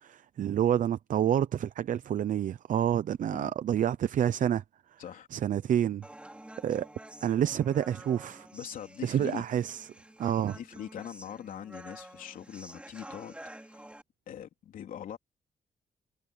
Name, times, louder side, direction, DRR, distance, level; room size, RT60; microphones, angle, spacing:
voice 1, 0.0-4.6 5.3-6.0 6.6-6.9 7.2-8.5 9.0-9.9 10.2-10.5, right 10 dB, 70° right, 0.7 m, -28 dB
Human voice, 6.0-14.0, right 1 dB, 10° right, 4.4 m, -49 dB
voice 2, 8.5-9.4 10.4-13.9 14.3-15.2, left 9 dB, 80° left, 3.4 m, -42 dB
cardioid pair, 90°, 14 cm